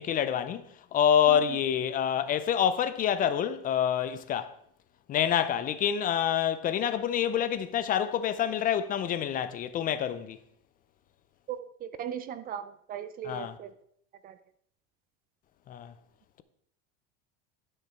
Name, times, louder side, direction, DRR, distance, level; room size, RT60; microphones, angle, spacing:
voice 1, 0.0-4.5 5.1-10.4 13.2-13.6 15.7-15.9, left 9 dB, 30° left, 0.5 m, -27 dB
voice 2, 11.5-13.7 14.2-14.3, right 9 dB, 30° right, 0.5 m, -38 dB
11.5 x 6.5 x 4.4 m
supercardioid pair, 145°, 29 cm